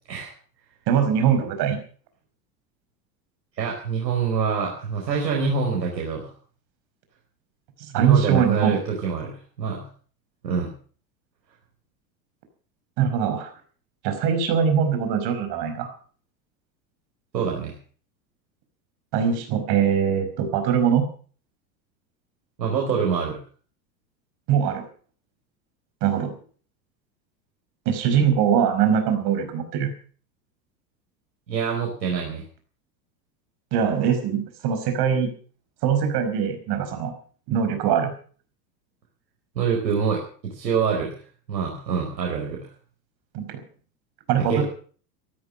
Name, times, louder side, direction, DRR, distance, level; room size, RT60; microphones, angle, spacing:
voice 1, 0.9-1.8 7.9-8.8 13.0-13.5 14.0-15.9 19.1-21.1 24.5-24.8 26.0-26.3 27.9-29.9 33.7-35.3 35.8-37.1 37.5-38.1 43.3-43.6 44.3-44.6, right 8 dB, 50° right, 7 dB, 5.2 m, -22 dB
voice 2, 3.6-6.3 7.9-9.3 9.6-9.8 10.4-10.7 17.3-17.7 22.6-23.4 31.5-32.4 39.5-41.1 41.5-42.6 44.5-44.6, right 6 dB, 75° right, -1 dB, 4.8 m, -25 dB
15.0 x 13.0 x 6.6 m, 0.44 s
hypercardioid pair, 85°, 50 cm